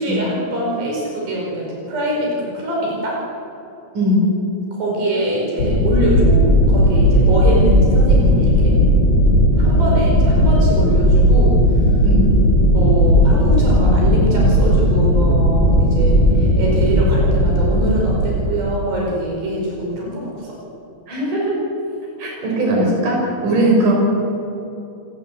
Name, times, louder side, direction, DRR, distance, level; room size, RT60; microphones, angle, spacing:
voice 1, 0.0-3.2 4.8-8.8 9.6-12.0 12.7-20.6 23.5-23.6, right 1 dB, 75° right, -3 dB, 7.2 m, -23 dB
voice 2, 3.9-4.3 12.0-12.3 21.1-21.6 22.2-23.9, right 1 dB, 50° right, -1 dB, 7.8 m, -18 dB
sound 1, 5.6-18.6, equal, 40° left, 5.8 m, -15 dB
29.0 x 18.5 x 8.3 m, 2.9 s
omnidirectional pair, 4.9 m